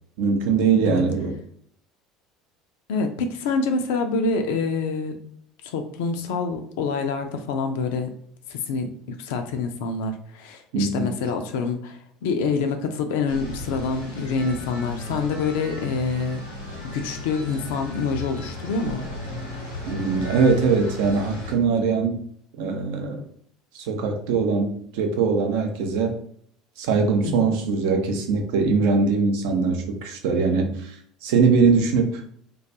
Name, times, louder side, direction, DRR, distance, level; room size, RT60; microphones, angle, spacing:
voice 1, 0.2-1.4 10.7-11.2 19.9-22.2 22.6-23.2 23.7-26.1 26.8-31.0 31.2-32.2, right 4 dB, 65° right, 4 dB, 0.4 m, -22 dB
voice 2, 2.9-5.2 5.6-8.1 8.5-16.4 16.8-19.1 27.2-27.5, left 4 dB, 65° left, 6 dB, 0.3 m, -26 dB
sound 1, 13.3-21.5, left 2 dB, 85° left, 0.7 m, -35 dB
2.2 x 2.2 x 2.7 m, 0.65 s
figure-of-eight pair, 65°, 0 cm